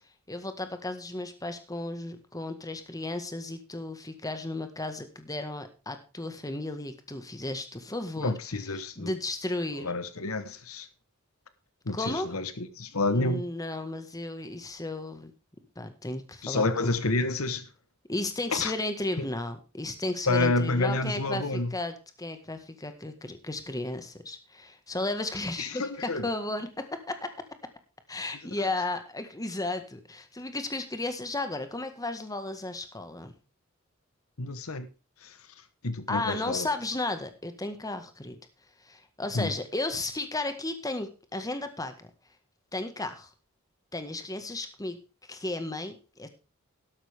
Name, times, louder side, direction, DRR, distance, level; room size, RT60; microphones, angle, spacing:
voice 1, 0.3-8.3 8.7-9.9 11.9-12.4 13.1-15.3 15.7-17.0 18.1-27.4 28.1-33.4 36.1-38.4 38.8-42.1 42.7-43.3 43.9-46.3, left 2 dB, 15° left, 1.6 m, -34 dB
voice 2, 8.2-9.1 9.8-10.9 11.9-13.4 16.4-17.7 18.5-18.7 19.2-19.3 20.3-21.7 25.6-26.3 34.4-34.9 35.2-35.4 35.8-36.7 39.3-39.5, left 2 dB, 75° left, 1.3 m, -29 dB
12.5 x 12.0 x 3.5 m
head